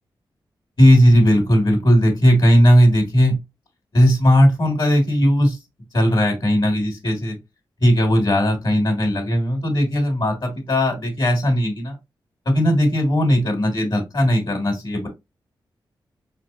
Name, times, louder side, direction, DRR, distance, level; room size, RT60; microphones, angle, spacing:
voice 1, 0.8-3.4 3.9-5.6 5.9-7.3 7.8-12.0 12.5-15.1, equal, 55° left, 0 dB, 2.3 m, -17 dB
4.2 x 3.4 x 2.7 m, 0.21 s
cardioid pair, 45°, 9 cm